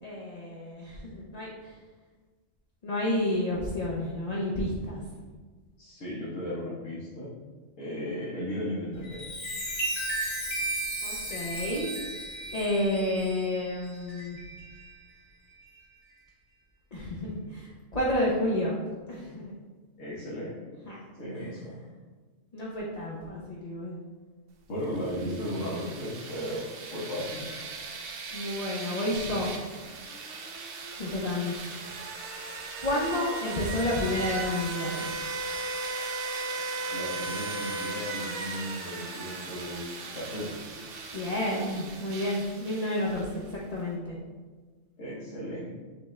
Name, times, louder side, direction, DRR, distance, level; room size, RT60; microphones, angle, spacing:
voice 1, 0.0-1.7 2.8-5.0 11.0-11.9 12.5-14.4 16.9-18.8 19.1-19.5 20.9-21.0 21.3-21.5 22.5-24.0 28.3-29.5 31.0-31.5 32.8-35.1 41.1-43.3 43.5-44.2, left 1 dB, 40° left, -5 dB, 0.6 m, -30 dB
voice 2, 5.8-7.3 7.8-9.4 20.0-20.6 21.2-21.7 24.7-26.6 26.9-27.4 36.9-40.7 45.0-45.7, equal, 75° left, -8 dB, 1.3 m, -35 dB
Chime, 8.9-14.9 15.5-15.8, right 1 dB, 60° left, 2.0 m, -35 dB
sound 1, 24.8-43.5, right 3 dB, 60° right, 0.7 m, -37 dB
6.1 x 2.4 x 3.1 m, 1.4 s
omnidirectional pair, 1.3 m